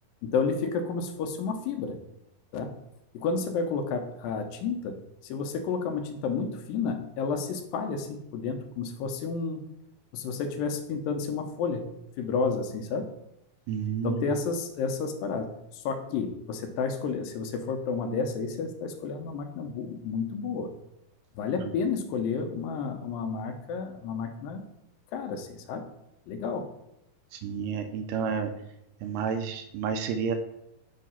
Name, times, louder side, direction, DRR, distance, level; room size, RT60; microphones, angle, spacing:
voice 1, 0.2-2.0 2.5-2.7 3.1-5.0 5.2-9.6 10.1-11.9 12.2-13.1 14.0-20.7 21.4-24.6 25.1-25.9 26.3-26.7, left 5 dB, 80° left, 6 dB, 2.3 m, -31 dB
voice 2, 13.7-14.2 21.6-21.7 27.3-28.5 29.0-30.4, right 6 dB, 80° right, 8 dB, 2.1 m, -30 dB
7.4 x 2.8 x 5.5 m, 0.84 s
omnidirectional pair, 4.1 m